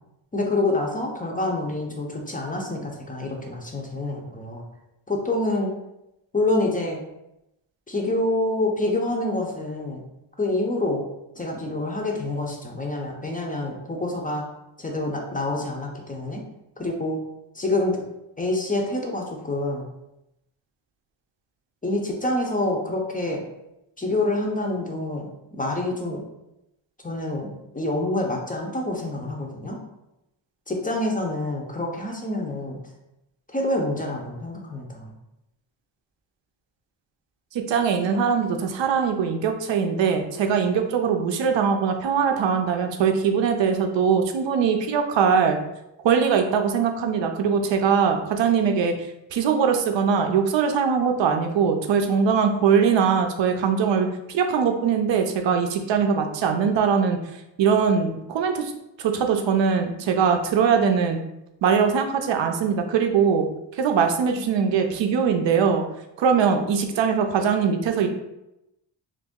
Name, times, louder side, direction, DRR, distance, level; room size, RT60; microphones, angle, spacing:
voice 1, 0.3-4.6 5.1-5.7 6.3-7.0 7.9-10.0 10.4-11.0 11.4-14.4 14.8-16.4 16.8-17.2 17.5-18.0 18.4-19.9 21.8-23.4 24.0-26.2 27.0-29.8 30.7-32.8 33.5-35.2, left 2 dB, 20° left, 0 dB, 0.5 m, -27 dB
voice 2, 37.5-45.6 46.0-48.9 49.3-57.2 57.6-58.7 59.0-61.2 61.6-63.5 63.8-65.8 66.2-68.1, right 6 dB, 70° right, 5 dB, 0.6 m, -21 dB
3.0 x 2.6 x 3.5 m, 0.89 s
wide cardioid pair, 125°, 46 cm